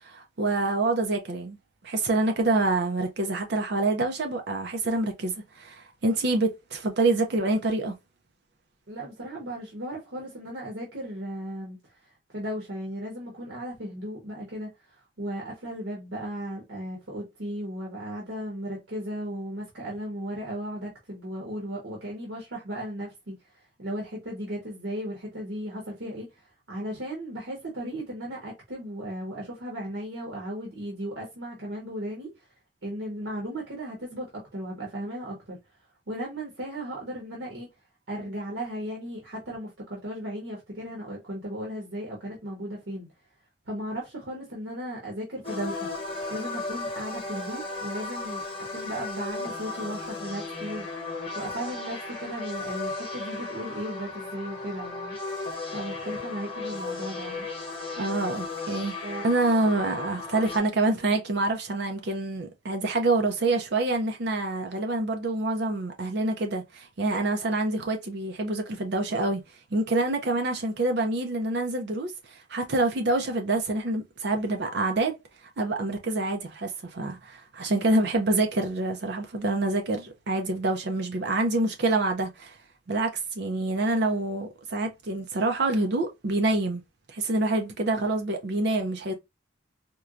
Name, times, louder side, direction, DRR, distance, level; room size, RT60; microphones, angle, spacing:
voice 1, 0.0-1.6 1.8-7.9 58.0-59.0 59.2-69.4 69.7-75.2 75.6-82.6 82.9-86.8 87.1-89.1, right 2 dB, 60° right, 0.5 m, -26 dB
voice 2, 8.9-11.8 12.3-23.3 23.8-32.5 32.8-35.6 36.1-37.7 38.1-43.1 43.7-45.9 46.3-48.4 48.7-55.2 55.7-57.5 59.0-59.3, equal, 75° right, 1.1 m, -36 dB
sound 1, 45.4-60.6, left 3 dB, 30° left, 0.9 m, -35 dB
4.4 x 2.2 x 2.4 m
head